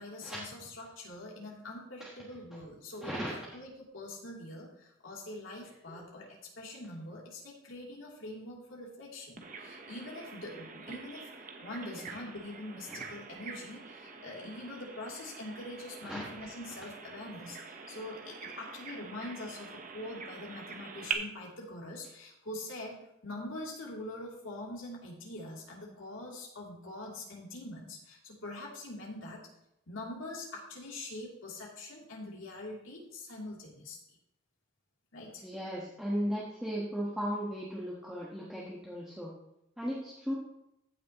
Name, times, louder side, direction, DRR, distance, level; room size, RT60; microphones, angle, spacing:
voice 1, 0.0-6.3 6.6-11.3 11.6-22.9 23.2-29.4 29.9-34.0 35.1-35.4, left 1 dB, 85° left, -3 dB, 3.0 m, -44 dB
voice 2, 3.0-3.3 5.9-6.0 12.9-13.0 16.1-16.2 35.4-39.3 39.8-40.3, equal, 5° right, -6 dB, 1.2 m, -36 dB
Bird vocalization bird call bird song, 9.4-21.1, right 5 dB, 40° right, 0.9 m, -45 dB
15.5 x 6.2 x 3.0 m, 0.83 s
head